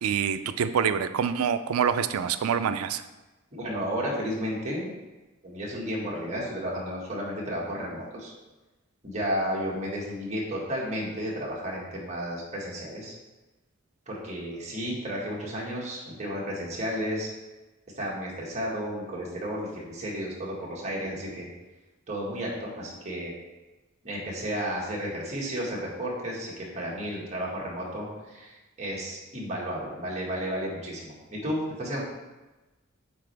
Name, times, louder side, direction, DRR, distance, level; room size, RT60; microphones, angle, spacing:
voice 1, 0.0-3.0, right 7 dB, 90° right, 11 dB, 0.4 m, -26 dB
voice 2, 3.5-4.9 5.4-8.3 9.0-13.1 14.1-17.3 18.0-21.5 22.1-23.3 24.0-32.0, equal, 35° right, -4 dB, 1.7 m, -32 dB
8.8 x 4.2 x 3.4 m, 1.1 s
head